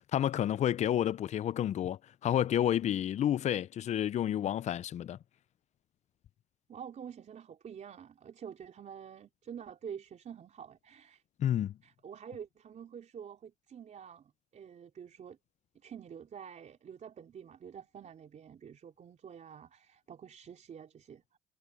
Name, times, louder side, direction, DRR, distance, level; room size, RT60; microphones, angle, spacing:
voice 1, 0.0-5.2 11.4-11.8, left 11 dB, 45° left, 0.4 m, -30 dB
voice 2, 6.7-11.2 11.8-15.4 15.8-21.4, right 8 dB, 45° right, 4.3 m, -48 dB
cardioid pair, 110°, 17 cm